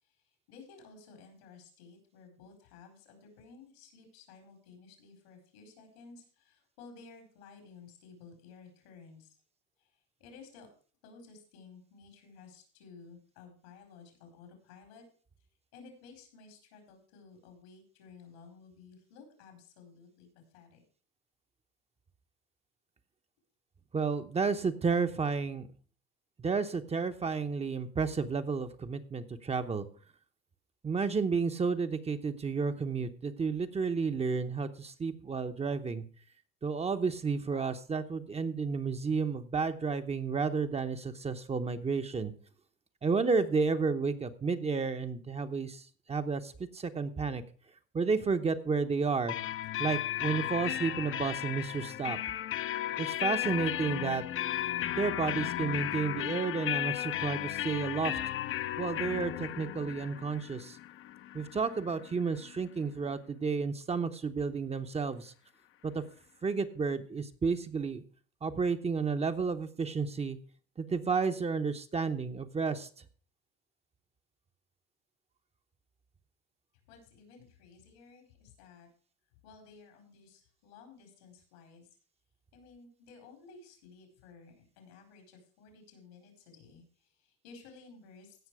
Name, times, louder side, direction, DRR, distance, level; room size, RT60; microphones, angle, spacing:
voice 1, 0.0-9.4 9.8-10.7 11.0-15.0 15.7-20.3 20.5-20.8 76.9-78.9 79.4-81.9 82.5-88.5, left 4 dB, 90° left, 4 dB, 4.6 m, -55 dB
voice 2, 23.9-25.7 26.4-29.9 30.8-36.0 36.6-42.3 43.0-47.4 47.9-49.4 49.8-52.2 53.0-54.2 55.0-58.2 58.8-60.8 61.3-65.3 65.8-66.0 66.4-68.0 68.4-70.4 70.8-72.9, right 5 dB, 20° right, 8 dB, 0.9 m, -31 dB
sound 1, 49.3-62.9, left 13 dB, 45° left, 0.7 m, -35 dB
16.0 x 5.9 x 4.8 m, 0.42 s
supercardioid pair, 105°, 30 cm